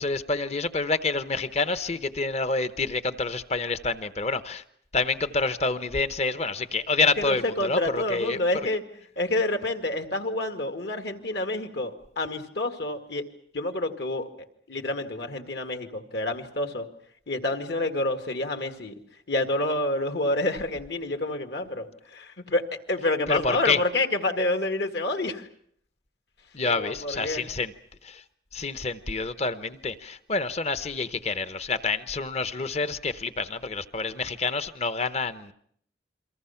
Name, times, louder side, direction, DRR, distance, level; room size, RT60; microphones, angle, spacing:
voice 1, 0.0-4.6 4.9-8.4 23.3-23.8 26.5-27.7 28.0-28.2 28.5-35.5, left 3 dB, 35° left, 12 dB, 1.0 m, -28 dB
voice 2, 7.2-8.8 9.2-13.2 13.5-14.3 14.7-16.9 17.3-18.9 19.3-25.5 26.8-27.4, left 2 dB, 65° left, 6 dB, 2.1 m, -28 dB
29.0 x 23.5 x 5.9 m, 0.64 s
head